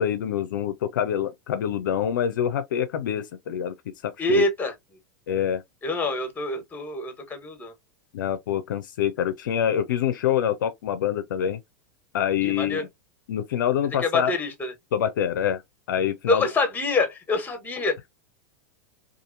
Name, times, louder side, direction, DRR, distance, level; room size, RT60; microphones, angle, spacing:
voice 1, 0.0-3.7 4.0-4.4 5.3-5.6 8.1-11.6 12.1-12.9 13.3-14.3 14.9-15.6 15.9-16.5, left 9 dB, 75° left, 0.4 m, -25 dB
voice 2, 4.2-4.7 5.8-7.7 12.4-12.9 14.0-14.7 16.3-18.1, left 2 dB, 15° left, 1.2 m, -26 dB
2.7 x 2.5 x 2.5 m
hypercardioid pair, 105°, 11 cm